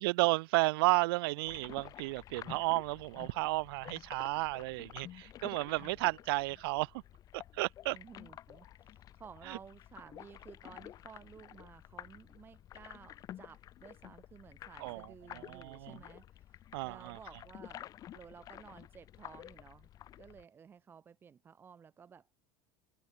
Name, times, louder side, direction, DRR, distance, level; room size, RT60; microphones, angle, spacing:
voice 1, 0.0-6.9 7.3-8.0 9.5-9.6 14.8-15.1 15.3-16.0 16.7-17.2, right 23 dB, 75° right, 1.4 m, -32 dB
sound 1, 1.5-20.4, left 12 dB, 30° left, 4.5 m, -51 dB
voice 2, 5.6-6.0 7.9-19.9 20.2-22.3, right 7 dB, 15° right, 1.5 m, -55 dB
cardioid pair, 175°, 13 cm